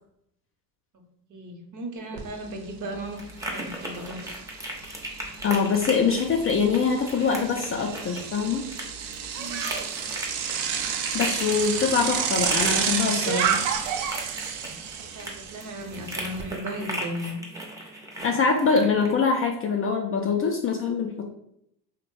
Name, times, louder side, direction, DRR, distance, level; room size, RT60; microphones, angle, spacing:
voice 1, 1.3-3.2 3.5-4.4 9.4-9.7 15.0-17.4, right 1 dB, 40° right, 3 dB, 0.8 m, -36 dB
sound 1, 2.0-19.1, right 1 dB, 5° right, 0.6 m, -37 dB
Bicycle, 2.2-2.3 2.6-16.4, right 7 dB, 70° right, 0.6 m, -30 dB
voice 2, 5.4-8.7 11.1-13.6 18.2-21.2, left 5 dB, 30° left, 1 dB, 0.4 m, -24 dB
2.9 x 2.1 x 3.0 m, 0.74 s
supercardioid pair, 80°, 46 cm